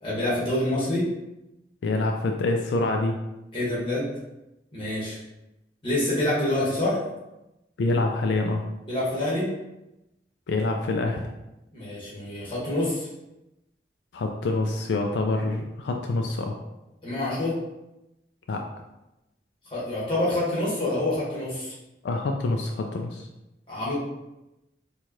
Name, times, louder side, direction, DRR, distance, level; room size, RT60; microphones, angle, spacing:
voice 1, 0.0-1.0 3.5-4.1 4.7-5.2 5.8-7.0 8.9-9.5 11.7-13.1 17.0-17.5 19.7-21.7 23.7-23.9, left 1 dB, 30° left, -7 dB, 1.4 m, -26 dB
voice 2, 1.8-3.2 7.8-8.7 10.5-11.2 14.1-16.6 18.5-18.7 22.0-23.3, left 2 dB, 85° left, 3 dB, 0.4 m, -26 dB
4.5 x 2.4 x 2.9 m, 0.95 s
head